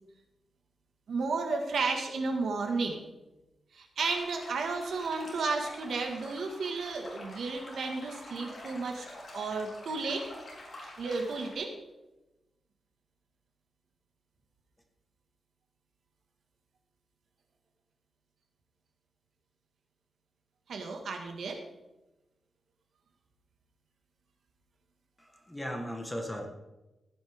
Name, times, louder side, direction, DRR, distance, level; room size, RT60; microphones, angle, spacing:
voice 1, 1.1-3.0 3.7-9.1 9.3-10.3 11.0-11.7 20.7-21.6, right 4 dB, 70° right, 3 dB, 1.7 m, -33 dB
sound 1, 4.0-11.5, left 1 dB, 40° left, 3.7 m, -47 dB
voice 2, 25.2-26.5, equal, 5° left, 3 dB, 1.4 m, -37 dB
15.0 x 9.4 x 3.6 m, 1.0 s
wide cardioid pair, 150°, 0 cm